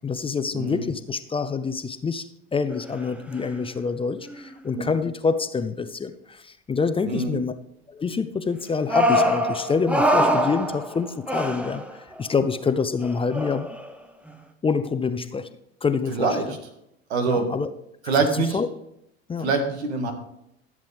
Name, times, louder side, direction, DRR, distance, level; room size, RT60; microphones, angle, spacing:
voice 1, 0.0-2.3 2.5-7.5 7.9-11.8 12.2-13.7 14.6-15.5 15.8-16.4 17.3-17.7 18.5-18.7 19.3-19.5, left 5 dB, 15° left, 11 dB, 0.6 m, -26 dB
voice 2, 0.5-0.9 4.7-4.8 7.0-7.4 16.1-16.4 17.1-17.5 18.1-18.6 19.4-20.1, right 4 dB, 80° right, 5 dB, 1.9 m, -24 dB
sound 1, 2.7-3.0 3.3-3.7 4.3-4.5 8.9-12.2 13.0-13.9, equal, 5° right, 1.0 m, -24 dB
14.0 x 7.5 x 3.5 m, 0.78 s
hypercardioid pair, 85°, 32 cm